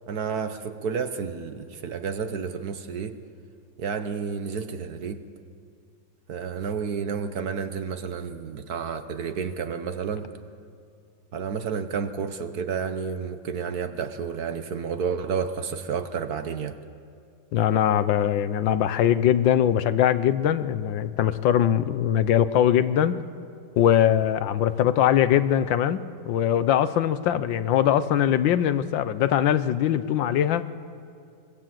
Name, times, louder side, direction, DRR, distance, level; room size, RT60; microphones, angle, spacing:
voice 1, 0.1-3.2 3.8-5.2 6.3-10.3 11.3-16.8, right 6 dB, 60° right, 9 dB, 1.4 m, -30 dB
voice 2, 17.5-23.2 23.8-30.7, left 10 dB, 80° left, 13 dB, 1.5 m, -22 dB
25.0 x 21.5 x 7.7 m, 2.4 s
omnidirectional pair, 2.1 m